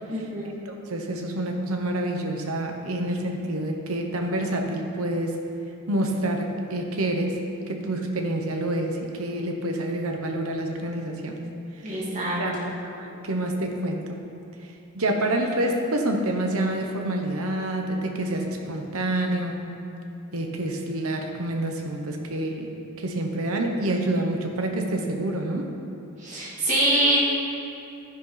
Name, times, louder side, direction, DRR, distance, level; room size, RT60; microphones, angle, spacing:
voice 1, 0.1-0.5 11.8-12.8 26.2-27.2, right 1 dB, 35° right, -7 dB, 2.6 m, -25 dB
voice 2, 0.7-5.4 5.9-7.4 7.7-11.4 11.8-12.0 12.4-14.2 14.9-19.7 20.3-25.7, right 1 dB, 70° right, 3 dB, 1.1 m, -27 dB
12.0 x 10.0 x 4.1 m, 2.8 s
head